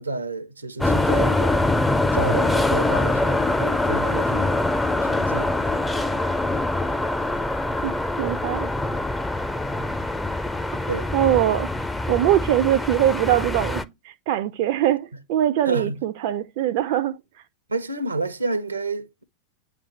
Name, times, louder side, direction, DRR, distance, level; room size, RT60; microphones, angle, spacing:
voice 1, 0.0-1.8 2.1-4.6 5.0-5.5 10.9-11.1 15.6-16.0 17.7-19.2, right 3 dB, 80° right, 0.8 m, -30 dB
sound 1, 0.8-13.8, left 2 dB, 5° left, 0.6 m, -24 dB
voice 2, 7.8-8.7 11.1-11.7 12.1-17.2, right 12 dB, 45° right, 0.5 m, -22 dB
8.9 x 3.3 x 5.3 m
figure-of-eight pair, 90°, 0 cm